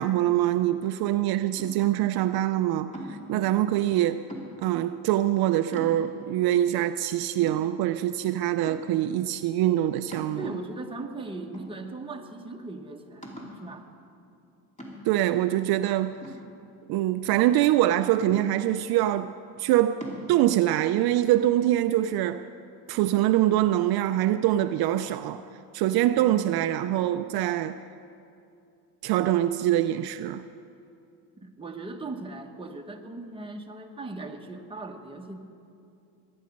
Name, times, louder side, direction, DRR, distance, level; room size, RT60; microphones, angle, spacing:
voice 1, 0.0-4.3 4.6-10.5 15.1-16.2 16.9-19.3 19.6-20.0 20.3-22.5 22.9-25.5 25.7-27.8 29.0-30.4, right 13 dB, 65° right, 0.5 m, -24 dB
sound 1, 1.6-2.0 2.9-3.4 4.3-4.8 5.3-5.4 5.7-6.4 6.9-7.0 7.4-8.2 8.7-9.1 10.1-10.8 11.5-12.2 12.5-12.6 13.2-13.7 14.8-15.3 16.2-17.1 18.3-18.9 20.0-20.3, equal, 20° left, 2.8 m, -41 dB
voice 2, 3.3-3.7 10.4-13.9 31.4-35.4, right 2 dB, 15° right, 1.2 m, -39 dB
20.5 x 9.7 x 5.3 m
cardioid pair, 115°, 40 cm